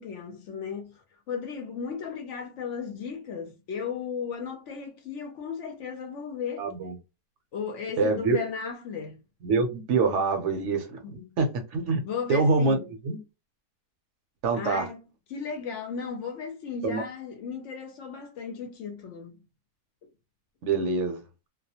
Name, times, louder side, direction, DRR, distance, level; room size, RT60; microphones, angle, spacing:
voice 1, 0.0-6.7 7.5-9.2 11.0-11.4 12.0-12.9 14.5-15.0 15.3-19.4 20.8-20.9, left 6 dB, 70° left, 0.8 m, -35 dB
voice 2, 6.6-7.0 8.0-8.4 9.4-12.0 12.3-12.8 13.0-13.2 14.4-14.9 16.8-17.0 20.6-21.2, right 4 dB, 65° right, 0.9 m, -25 dB
2.3 x 2.1 x 2.7 m
omnidirectional pair, 1.5 m